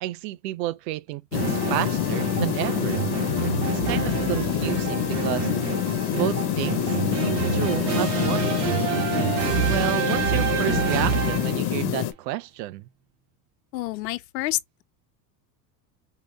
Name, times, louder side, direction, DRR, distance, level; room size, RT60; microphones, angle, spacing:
voice 1, 0.0-3.0 3.7-5.5 6.1-6.9 7.2-8.6 9.6-12.9, right 15 dB, 85° right, 0.6 m, -30 dB
sound 1, 1.3-12.1, left 12 dB, 55° left, 1.1 m, -26 dB
sound 2, 1.3-11.7, right 8 dB, 55° right, 1.9 m, -28 dB
voice 2, 13.7-14.8, left 17 dB, 90° left, 0.7 m, -29 dB
4.9 x 2.8 x 3.3 m
hypercardioid pair, 90°, 49 cm